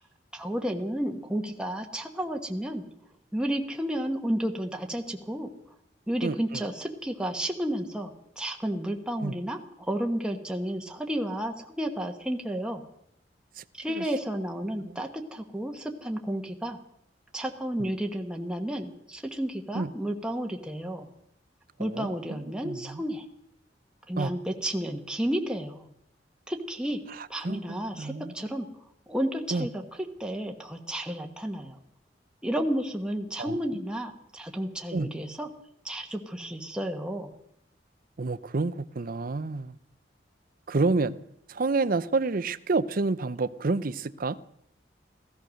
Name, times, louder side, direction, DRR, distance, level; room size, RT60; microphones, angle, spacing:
voice 1, 0.3-2.8 3.3-5.5 6.1-9.6 9.9-12.8 13.7-16.8 17.3-21.1 21.8-23.3 24.1-25.9 26.5-28.7 29.1-29.8 30.2-31.8 32.4-35.5 35.8-37.3, right 1 dB, 5° right, 1.3 m, -32 dB
voice 2, 6.2-6.6 9.2-9.4 13.6-14.0 14.8-15.0 17.8-17.9 19.7-19.9 21.8-23.0 24.2-24.3 27.1-27.6 27.9-28.3 29.5-29.7 33.4-33.8 34.9-35.1 38.2-39.8 40.7-41.2 41.5-44.4, right 3 dB, 50° right, 0.6 m, -29 dB
16.5 x 13.5 x 6.4 m
head